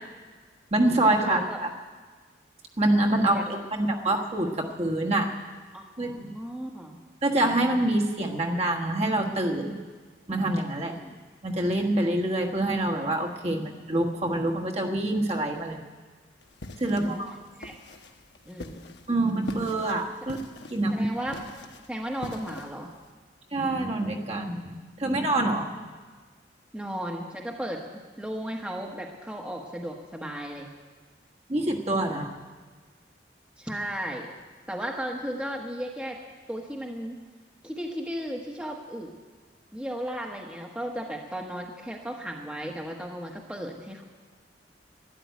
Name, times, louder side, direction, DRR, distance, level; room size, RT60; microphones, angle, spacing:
voice 1, 0.7-1.4 2.8-5.3 6.0-6.3 7.2-9.8 10.3-11.0 11.4-15.8 16.8-17.3 19.1-20.4 20.7-21.1 23.5-25.9 31.5-32.3, right 1 dB, 35° right, 1 dB, 1.4 m, -26 dB
voice 2, 1.2-1.6 3.2-3.5 5.7-7.0 10.8-11.1 16.8-17.2 17.6-17.7 18.5-18.9 20.9-21.4 21.9-22.9 26.7-30.7 32.1-32.3 33.6-34.3 34.7-36.2 36.5-37.2 37.6-39.1 39.7-44.0, equal, 5° right, 0 dB, 1.2 m, -35 dB
sound 1, 16.4-23.1, left 2 dB, 70° left, 1.1 m, -43 dB
12.5 x 11.5 x 9.4 m, 1.5 s
head